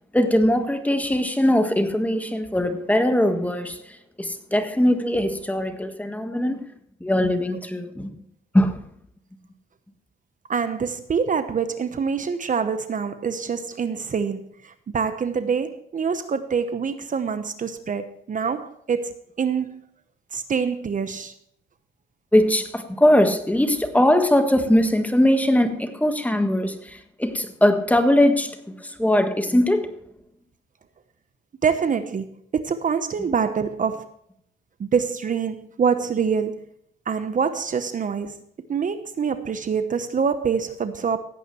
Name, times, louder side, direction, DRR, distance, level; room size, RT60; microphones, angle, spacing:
voice 1, 0.1-6.7 7.0-8.2 8.5-8.8 22.3-29.9, left 1 dB, 5° left, 1.5 m, -21 dB
voice 2, 10.5-19.8 20.3-21.3 31.6-32.3 32.5-34.1 34.8-36.7 37.1-38.4 38.7-41.2, right 6 dB, 40° right, 1.0 m, -25 dB
16.5 x 9.1 x 3.1 m
cardioid pair, 90°, 20 cm